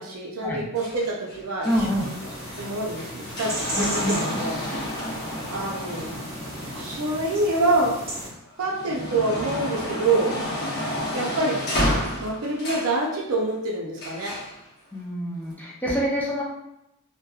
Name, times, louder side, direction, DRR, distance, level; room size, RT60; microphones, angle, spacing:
voice 1, 0.0-2.1 2.6-4.6 5.5-6.1 6.8-7.9 8.6-10.4 11.1-11.6 12.1-14.4, right 2 dB, 80° right, -2 dB, 0.5 m, -26 dB
sound 1, 0.8-8.0 8.4-13.0 14.0-14.5 15.4-15.5, left 1 dB, 50° left, 0.7 m, -31 dB
voice 2, 1.6-2.1 3.8-4.3 14.9-16.4, equal, 10° left, -5 dB, 0.5 m, -26 dB
sound 2, 1.7-8.3, right 1 dB, 25° right, 1.1 m, -35 dB
2.7 x 2.1 x 2.3 m, 0.85 s
head